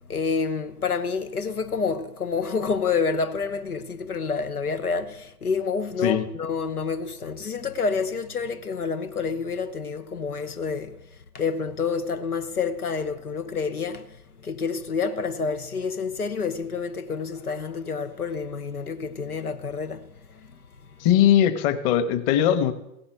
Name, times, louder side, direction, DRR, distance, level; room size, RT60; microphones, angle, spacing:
voice 1, 0.1-11.0 11.3-20.5, left 5 dB, 85° left, 1.0 m, -28 dB
voice 2, 21.0-22.7, left 10 dB, 35° left, 1.4 m, -20 dB
16.0 x 8.7 x 8.2 m
figure-of-eight pair, 100°, 43 cm